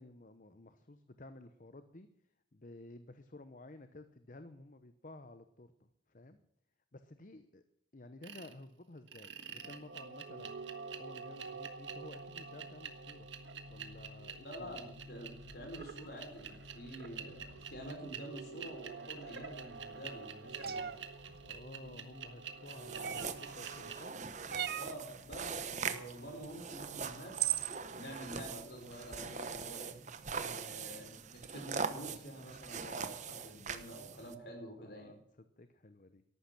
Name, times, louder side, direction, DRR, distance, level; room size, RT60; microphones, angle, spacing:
voice 1, 0.0-2.1 2.5-6.4 6.9-7.6 7.9-10.5 11.0-13.3 13.7-14.8 21.4-24.3 30.4-30.7 34.8-36.2, left 2 dB, 45° left, 10 dB, 0.9 m, -53 dB
sound 1, 8.2-8.5 9.1-24.0, right 5 dB, 90° right, 1.7 m, -47 dB
voice 2, 14.4-20.9 24.8-27.3 27.9-30.0 30.5-35.2, equal, 60° left, 3 dB, 5.4 m, -48 dB
sound 2, 20.6-21.0 23.0-23.5 24.5-25.0 26.7-26.8 27.3-27.8, right 11 dB, 55° right, 0.7 m, -35 dB
sound 3, 22.7-34.3, right 5 dB, 40° right, 1.0 m, -42 dB
14.0 x 12.0 x 6.0 m, 0.72 s
head